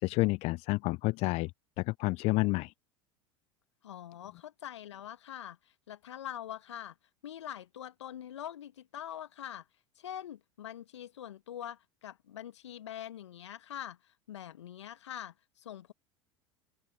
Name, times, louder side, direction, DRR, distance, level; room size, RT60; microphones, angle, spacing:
voice 1, 0.0-1.5 1.8-2.7, left 22 dB, 40° left, 0.5 m, -29 dB
voice 2, 3.8-7.0 7.2-9.7 10.0-15.9, left 11 dB, 70° left, 2.0 m, -44 dB
open air
figure-of-eight pair, 75°, 16 cm